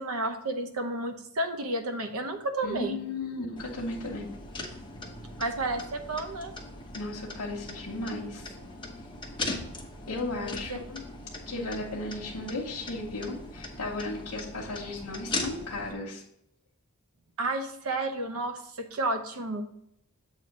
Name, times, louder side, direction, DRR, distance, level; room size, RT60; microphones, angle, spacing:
voice 1, 0.0-3.0 5.4-6.5 10.4-10.8 17.4-19.6, right 2 dB, 65° right, 6 dB, 0.8 m, -31 dB
voice 2, 2.6-4.3 6.9-8.6 10.1-11.0 11.5-16.2, left 2 dB, 85° left, -3 dB, 1.0 m, -35 dB
sound 1, 3.6-15.9, left 2 dB, 20° left, 0.9 m, -40 dB
7.7 x 2.9 x 6.0 m, 0.76 s
head